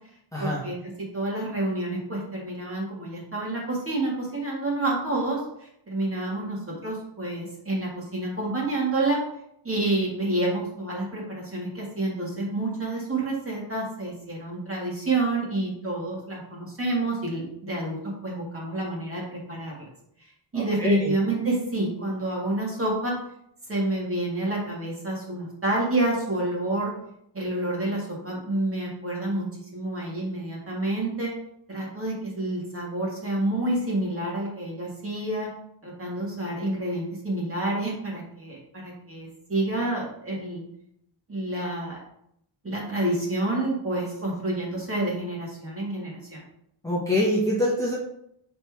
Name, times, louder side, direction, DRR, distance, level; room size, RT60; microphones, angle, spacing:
voice 1, 0.4-9.2 9.6-19.7 20.5-23.1 23.7-26.9 27.3-29.5 29.7-31.3 31.7-35.5 35.8-40.6 41.3-42.0 42.6-46.4, right 2 dB, 30° right, -3 dB, 2.0 m, -28 dB
voice 2, 20.6-21.0 46.8-47.9, left 1 dB, 5° left, -5 dB, 1.0 m, -24 dB
6.4 x 4.4 x 3.5 m, 0.74 s
wide cardioid pair, 150°, 46 cm